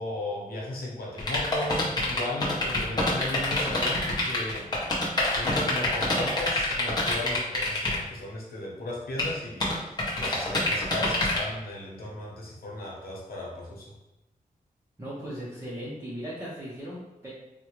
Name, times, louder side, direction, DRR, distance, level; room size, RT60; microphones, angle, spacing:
voice 1, 0.0-4.7 5.3-13.9, left 2 dB, 90° left, -3 dB, 0.9 m, -36 dB
sound 1, 1.2-8.0 9.2-9.3 9.6-11.4, left 2 dB, 25° left, 0.7 m, -26 dB
voice 2, 15.0-17.3, equal, 15° right, -9 dB, 0.6 m, -37 dB
3.6 x 2.1 x 3.0 m, 0.94 s
wide cardioid pair, 170°, 15 cm